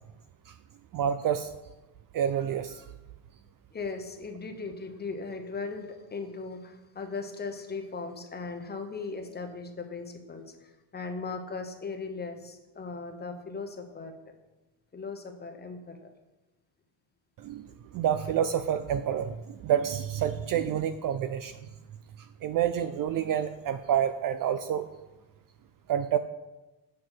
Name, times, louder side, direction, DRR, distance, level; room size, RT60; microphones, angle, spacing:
voice 1, 0.9-1.5 2.1-2.8 17.4-17.7 17.9-21.6 22.4-24.9 25.9-26.2, right 9 dB, 45° right, 10 dB, 0.4 m, -28 dB
voice 2, 3.7-14.3 14.9-16.1, left 4 dB, 20° left, 5 dB, 1.0 m, -38 dB
7.4 x 6.8 x 6.1 m, 1.1 s
cardioid pair, 140°, 50 cm